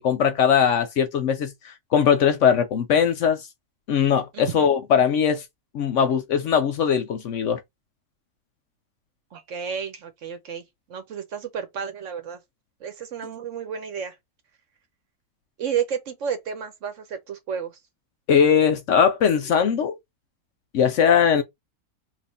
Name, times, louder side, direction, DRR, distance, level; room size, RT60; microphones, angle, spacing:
voice 1, 0.0-3.5 3.9-5.4 5.7-7.6 18.3-20.0 20.7-21.4, left 7 dB, 65° left, 0.8 m, -20 dB
voice 2, 4.3-4.7 9.3-12.4 12.8-14.2 15.6-17.8, right 7 dB, 60° right, 0.9 m, -31 dB
3.0 x 2.5 x 4.1 m
omnidirectional pair, 1.6 m